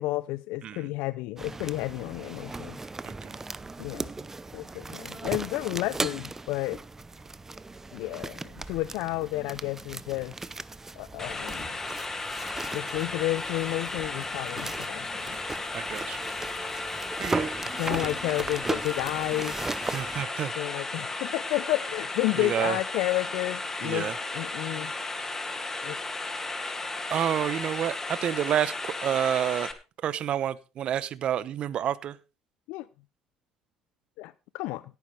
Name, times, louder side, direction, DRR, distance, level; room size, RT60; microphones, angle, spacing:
voice 1, 0.0-2.8 3.8-4.1 4.5-6.8 7.9-10.3 11.0-11.8 12.7-15.3 17.7-19.6 20.6-24.9 25.8-26.0 32.7-32.9 34.2-34.8, left 18 dB, 80° left, 0.5 m, -31 dB
sound 1, 1.4-20.3, right 3 dB, 20° right, 0.8 m, -37 dB
sound 2, 2.6-3.3 3.6-3.7 4.1-4.3 4.6-4.8 5.1-5.8 6.1-6.3 6.6-6.8 7.1-7.8 8.1-9.8 10.1-10.3, right 4 dB, 35° right, 3.0 m, -56 dB
voice 2, 3.0-3.4 15.7-16.2 17.2-17.5 19.9-20.5 22.4-22.8 23.8-24.1 27.1-29.7 30.0-32.2, right 10 dB, 55° right, 0.9 m, -29 dB
sound 3, 11.2-29.7, left 3 dB, 20° left, 2.3 m, -35 dB
16.5 x 9.4 x 3.3 m
supercardioid pair, 80°, 2 cm